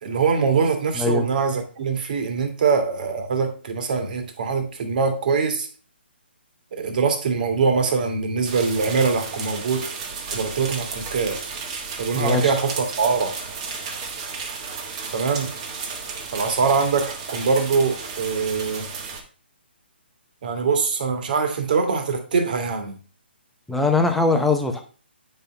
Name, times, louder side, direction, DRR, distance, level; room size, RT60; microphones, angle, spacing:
voice 1, 0.0-5.7 6.7-9.9 10.3-11.4 12.0-13.3 15.1-15.5 16.3-18.9 20.4-23.0, right 5 dB, 50° right, 1.8 m, -23 dB
voice 2, 0.9-1.3 12.1-12.5 23.7-24.8, left 3 dB, ahead, 0.8 m, -21 dB
sound 1, 8.4-19.2, right 5 dB, 35° right, 1.4 m, -33 dB
8.9 x 5.4 x 3.4 m
hypercardioid pair, 155°, 6 cm